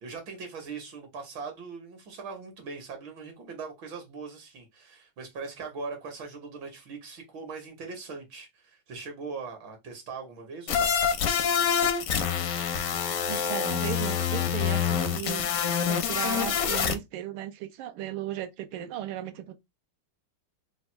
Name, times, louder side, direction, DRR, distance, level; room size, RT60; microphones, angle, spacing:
voice 1, 0.0-10.9, right 4 dB, 70° right, 1.8 m, -40 dB
sound 1, 10.7-16.9, left 7 dB, 75° left, 0.8 m, -26 dB
voice 2, 13.3-15.5 15.9-19.6, right 11 dB, 85° right, 1.5 m, -36 dB
4.0 x 2.3 x 4.3 m
omnidirectional pair, 2.3 m